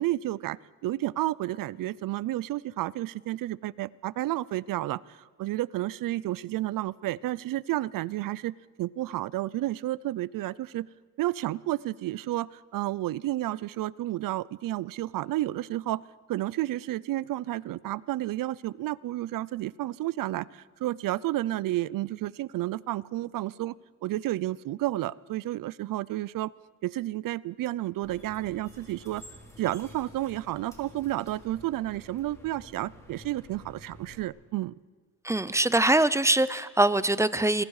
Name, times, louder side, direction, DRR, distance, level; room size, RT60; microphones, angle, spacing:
voice 1, 0.0-10.9 11.2-16.0 16.3-23.8 24.0-26.5 26.8-29.2 29.6-34.7, right 15 dB, 65° right, 22 dB, 0.6 m, -31 dB
sound 1, 28.0-34.2, equal, 10° left, 4.7 m, -51 dB
voice 2, 35.2-37.6, right 2 dB, 10° right, 16 dB, 0.5 m, -23 dB
27.5 x 21.0 x 4.9 m, 1.4 s
cardioid pair, 115°, 35 cm